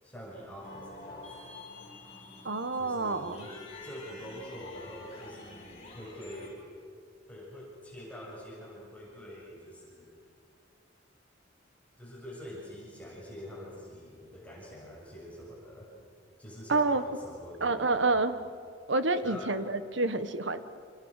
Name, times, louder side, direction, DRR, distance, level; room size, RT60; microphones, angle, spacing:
voice 1, 0.0-1.3 2.8-3.5 3.8-6.6 7.3-10.1 12.0-15.9 16.4-18.2 19.2-19.5, equal, 10° left, -5 dB, 7.0 m, -45 dB
sound 1, 0.6-6.5, left 2 dB, 35° left, 6.9 m, -48 dB
voice 2, 2.4-3.5 16.7-17.0 17.6-18.4 18.9-20.6, right 3 dB, 70° right, 11 dB, 1.5 m, -28 dB
28.5 x 27.5 x 6.7 m, 2.3 s
head